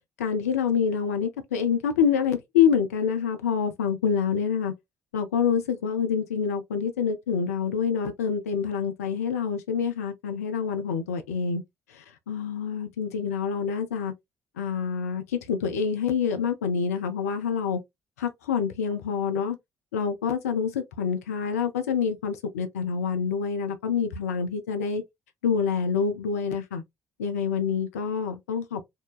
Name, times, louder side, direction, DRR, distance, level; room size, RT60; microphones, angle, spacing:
voice 1, 0.2-4.7 5.1-11.6 11.9-14.1 14.6-17.8 18.2-19.6 19.9-25.0 25.4-26.8 27.2-28.8, left 6 dB, 75° left, 0.5 m, -26 dB
4.6 x 2.2 x 2.3 m
figure-of-eight pair, 45°, 8 cm